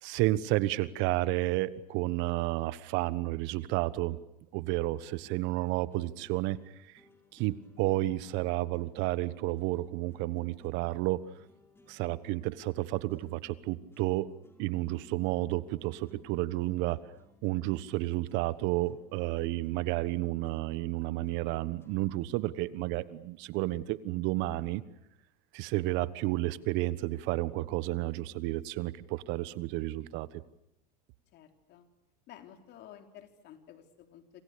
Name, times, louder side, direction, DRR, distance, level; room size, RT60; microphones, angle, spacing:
voice 1, 0.0-4.2 4.5-6.6 7.3-11.3 11.9-14.3 14.6-17.0 17.4-24.8 25.5-30.3, right 17 dB, 60° right, 16 dB, 1.3 m, -31 dB
sound 1, 4.3-23.1, left 1 dB, 10° left, 4.6 m, -64 dB
voice 2, 31.3-31.9 32.3-34.4, left 10 dB, 55° left, 5 dB, 3.8 m, -52 dB
28.5 x 27.0 x 6.8 m, 0.80 s
supercardioid pair, 100°, 21 cm